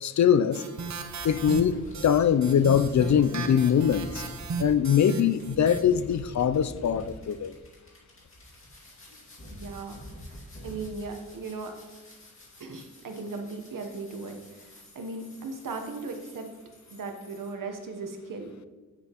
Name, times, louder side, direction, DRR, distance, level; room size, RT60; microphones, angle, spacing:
voice 1, 0.0-0.6 1.2-4.2 4.6-7.5, left 8 dB, 60° left, 14 dB, 0.4 m, -22 dB
sound 1, 0.5-5.8, right 5 dB, 60° right, 0.8 m, -36 dB
sound 2, 1.1-17.5, equal, 40° left, 2.1 m, -48 dB
voice 2, 9.5-10.0 10.3-11.7 12.6-16.5 16.9-18.5, right 3 dB, 90° right, 4 dB, 1.0 m, -37 dB
8.6 x 7.3 x 2.9 m, 1.3 s
cardioid pair, 65°, 31 cm